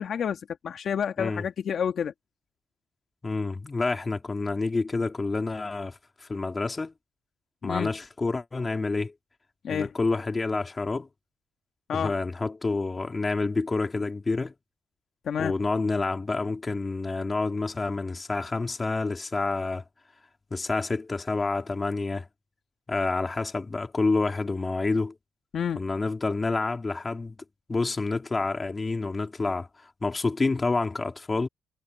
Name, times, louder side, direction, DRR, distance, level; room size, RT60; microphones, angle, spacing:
voice 1, 0.0-2.1 7.6-7.9 9.6-9.9 11.9-12.1 15.3-15.5 25.5-25.8, left 8 dB, 60° left, 1.9 m, -29 dB
voice 2, 3.2-6.9 7.6-9.1 9.7-11.1 11.9-14.5 15.4-19.8 20.5-22.3 22.9-25.1 25.8-27.3 27.7-31.5, left 3 dB, 25° left, 2.9 m, -28 dB
cardioid pair, 90°, 0 cm